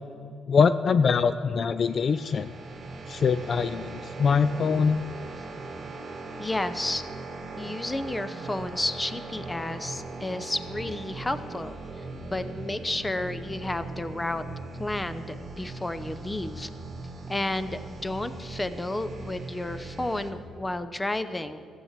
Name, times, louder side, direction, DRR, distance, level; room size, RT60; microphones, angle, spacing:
voice 1, 0.5-2.5 3.1-5.0, left 5 dB, 50° left, 13 dB, 0.4 m, -23 dB
sound 1, 1.8-20.3, right 3 dB, 40° right, 2.0 m, -39 dB
voice 2, 6.4-7.0 7.6-11.8 12.3-14.4 14.8-16.7 17.3-21.6, left 2 dB, 15° left, 12 dB, 0.8 m, -31 dB
14.5 x 8.3 x 7.4 m, 2.4 s
cardioid pair, 90°, 0 cm